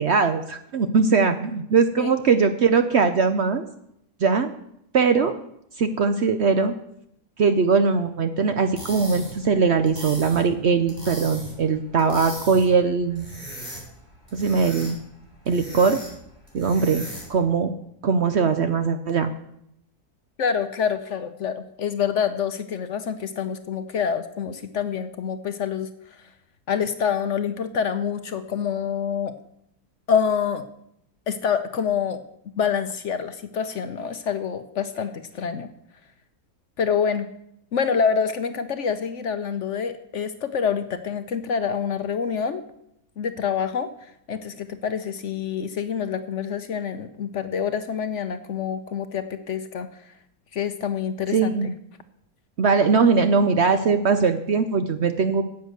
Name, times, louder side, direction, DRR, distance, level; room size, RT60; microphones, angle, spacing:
voice 1, 0.0-3.7 4.2-4.5 4.9-5.3 5.8-6.7 7.4-13.3 14.3-15.0 15.5-16.0 16.5-17.7 18.0-19.3 51.3-51.7 52.6-55.4, right 5 dB, 55° right, 9 dB, 0.8 m, -21 dB
sound 1, 8.6-17.5, right 1 dB, 25° right, 4.5 m, -39 dB
voice 2, 20.4-25.9 26.7-29.3 30.1-30.7 31.3-32.2 32.6-35.7 36.8-37.3 37.7-42.6 43.2-49.9 50.5-51.5, left 7 dB, 60° left, 10 dB, 0.9 m, -26 dB
10.0 x 8.2 x 7.8 m, 0.75 s
omnidirectional pair, 1.7 m